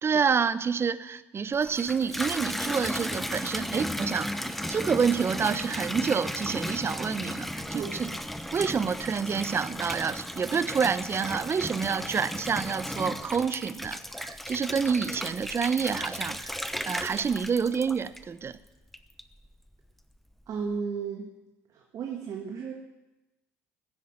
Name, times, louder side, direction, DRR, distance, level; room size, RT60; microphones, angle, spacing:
voice 1, 0.0-8.1 8.5-18.6, right 6 dB, 35° right, 16 dB, 0.8 m, -28 dB
Water tap faucet / Bathtub (filling or washing), 1.5-18.5 18.9-19.5, equal, ahead, 1.0 m, -35 dB
voice 2, 20.5-21.3 21.7-22.7, right 6 dB, 55° right, 1 dB, 1.9 m, -34 dB
15.0 x 9.1 x 7.5 m, 1.0 s
hypercardioid pair, 55°, 7 cm